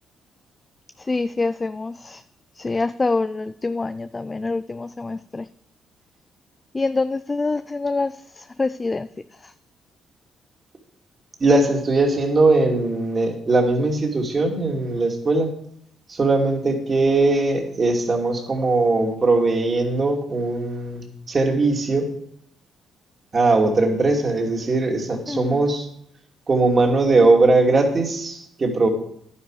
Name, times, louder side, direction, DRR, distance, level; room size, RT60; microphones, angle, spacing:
voice 1, 1.0-2.2 2.6-5.5 6.7-9.1 9.4-9.5 25.3-25.6, left 3 dB, 25° left, 12 dB, 0.4 m, -26 dB
voice 2, 11.4-15.5 16.1-22.1 23.3-25.9 26.5-28.9, right 3 dB, 35° right, 2 dB, 2.7 m, -20 dB
11.0 x 9.8 x 4.8 m, 0.69 s
cardioid pair, 90°, 0 cm